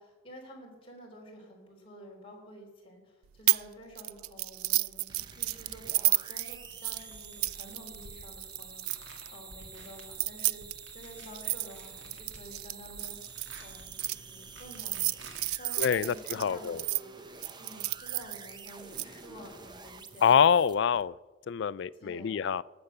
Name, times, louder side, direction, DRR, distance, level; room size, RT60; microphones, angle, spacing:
voice 1, 0.0-17.2 17.6-20.3 22.0-22.5, equal, 25° left, -2 dB, 3.5 m, -50 dB
sound 1, 3.5-3.7 4.0-9.3 10.0-14.1 14.7-17.0 17.4-19.0, right 19 dB, 90° right, 0.3 m, -31 dB
sound 2, 5.1-21.0, right 5 dB, 20° right, 0.6 m, -49 dB
sound 3, 6.4-16.6, right 2 dB, 60° right, 2.1 m, -54 dB
voice 2, 15.8-16.8 20.2-21.1 21.5-22.6, left 7 dB, 55° left, 19 dB, 0.3 m, -25 dB
18.5 x 7.1 x 6.6 m, 1.2 s
head